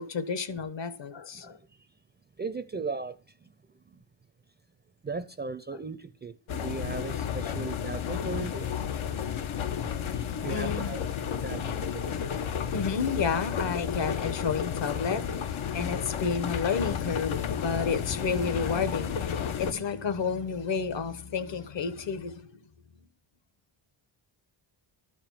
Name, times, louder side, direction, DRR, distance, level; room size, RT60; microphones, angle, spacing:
voice 1, 0.0-1.6 7.1-7.2 7.4-7.6 10.5-10.9 12.7-22.5, left 5 dB, 65° left, 1.3 m, -31 dB
voice 2, 2.4-3.2 3.4-3.5 5.0-8.7 10.1-11.0 11.4-12.2, right 4 dB, 25° right, 0.4 m, -37 dB
sound 1, 6.5-19.7, left 8 dB, 85° left, 1.0 m, -32 dB
13.0 x 5.1 x 7.4 m
wide cardioid pair, 155°, 47 cm